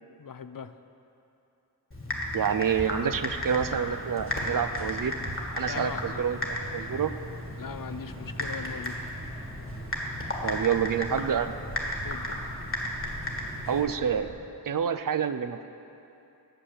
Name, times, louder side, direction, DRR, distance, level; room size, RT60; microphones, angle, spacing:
voice 1, 0.2-0.7 5.7-6.1 7.6-9.0 12.0-12.5, left 6 dB, 55° left, 11 dB, 0.5 m, -39 dB
Typing, 1.9-13.8, left 1 dB, 30° left, 1.5 m, -35 dB
voice 2, 2.3-5.1 5.6-6.4 6.7-7.1 10.4-11.5 13.7-14.3 14.6-15.6, right 8 dB, 55° right, 11 dB, 0.4 m, -27 dB
sound 1, 2.6-14.3, right 2 dB, 35° right, 1.4 m, -44 dB
9.0 x 6.5 x 7.5 m, 2.7 s
wide cardioid pair, 65°, 39 cm